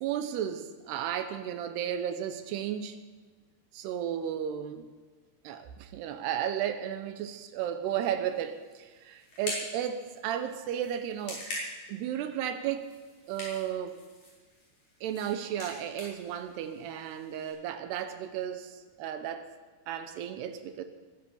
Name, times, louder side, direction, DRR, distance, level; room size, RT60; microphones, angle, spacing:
voice 1, 0.0-3.0 3.7-4.9 5.4-11.5 11.9-12.9 13.3-14.0 15.0-19.5 19.9-20.8, right 9 dB, 75° right, 9 dB, 2.9 m, -34 dB
sound 1, 8.3-17.5, left 1 dB, 60° left, 7.2 m, -44 dB
21.5 x 9.1 x 6.9 m, 1.4 s
omnidirectional pair, 4.9 m